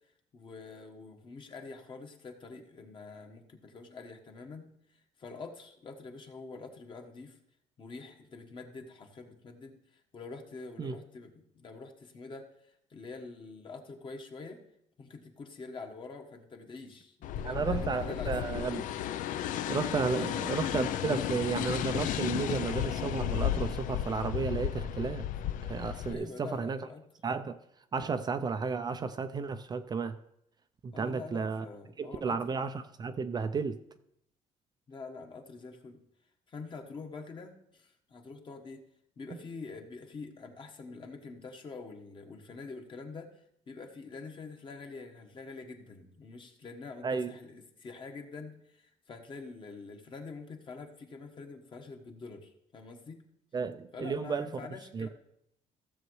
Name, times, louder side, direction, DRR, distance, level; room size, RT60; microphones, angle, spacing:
voice 1, 0.3-4.7 4.9-7.4 7.8-14.6 15.0-18.6 20.1-20.3 26.1-27.0 30.9-32.6 34.9-36.0 36.5-38.8 39.2-43.4 43.7-53.2 53.9-55.1, left 4 dB, 35° left, 4 dB, 1.3 m, -46 dB
sound 1, 17.2-26.1, left 11 dB, 75° left, 0.5 m, -33 dB
voice 2, 17.4-18.9 19.7-25.3 25.6-26.9 27.2-27.6 27.9-30.2 30.8-31.7 32.0-33.8 47.0-47.3 53.5-54.5 54.9-55.1, right 5 dB, 30° right, 9 dB, 0.4 m, -33 dB
15.5 x 7.1 x 3.2 m, 0.75 s
cardioid pair, 140°, 13 cm